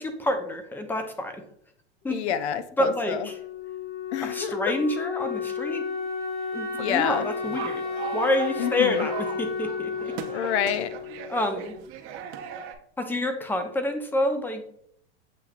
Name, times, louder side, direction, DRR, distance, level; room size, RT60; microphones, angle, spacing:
voice 1, 0.0-1.4 2.0-2.2 2.8-3.3 4.2-5.8 6.5-7.8 8.1-10.1 11.3-11.8 13.0-14.7, left 1 dB, 5° left, 7 dB, 0.5 m, -28 dB
voice 2, 2.1-3.3 4.1-4.6 6.8-7.3 8.6-9.1 10.3-10.9, left 9 dB, 70° left, 12 dB, 0.5 m, -28 dB
Wind instrument woodwind instrument, 3.2-11.9, left 5 dB, 25° left, 1.0 m, -33 dB
sound 1, 7.4-12.7, right 9 dB, 40° right, 0.6 m, -38 dB
7.4 x 2.9 x 2.4 m, 0.67 s
hypercardioid pair, 110°, 34 cm